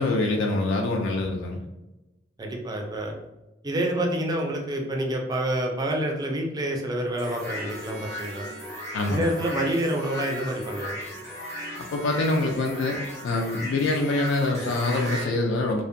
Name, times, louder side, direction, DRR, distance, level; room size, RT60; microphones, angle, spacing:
voice 1, 0.0-1.6 8.9-9.3 11.8-13.0 13.2-15.8, left 2 dB, 80° left, 1 dB, 0.3 m, -25 dB
voice 2, 2.4-3.1 3.6-8.5 9.1-11.0, right 1 dB, 20° right, 1 dB, 0.4 m, -28 dB
sound 1, 7.2-15.3, equal, 15° left, 0.7 m, -36 dB
2.6 x 2.1 x 2.5 m, 1.0 s
head